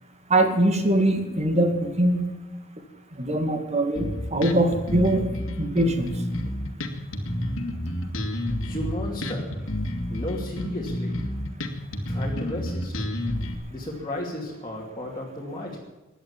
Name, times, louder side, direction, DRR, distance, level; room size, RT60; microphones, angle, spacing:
voice 1, 0.3-2.3 3.2-6.1, right 1 dB, 35° right, 7 dB, 2.2 m, -22 dB
Bass guitar, 4.0-13.6, left 1 dB, 70° left, 2.3 m, -30 dB
voice 2, 8.6-9.7 10.1-11.2 12.1-13.1 13.7-15.8, left 1 dB, 20° left, -3 dB, 2.7 m, -34 dB
17.0 x 11.0 x 7.3 m, 1.1 s
head